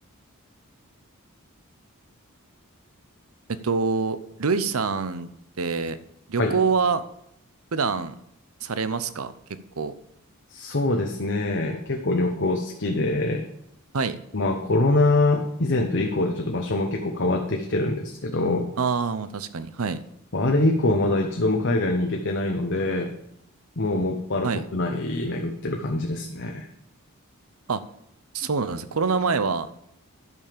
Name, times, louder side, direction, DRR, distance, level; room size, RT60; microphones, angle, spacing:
voice 1, 3.5-5.3 5.6-6.0 6.3-7.1 7.7-8.2 8.6-9.3 9.8-9.9 13.9-14.2 18.8-20.0 24.4-24.7 27.7-27.8 28.3-29.7, right 5 dB, 70° right, 14 dB, 0.7 m, -25 dB
voice 2, 10.5-13.5 14.3-18.7 20.3-23.1 23.8-26.7, left 2 dB, 55° left, 2 dB, 1.0 m, -24 dB
10.5 x 5.6 x 6.8 m, 0.76 s
head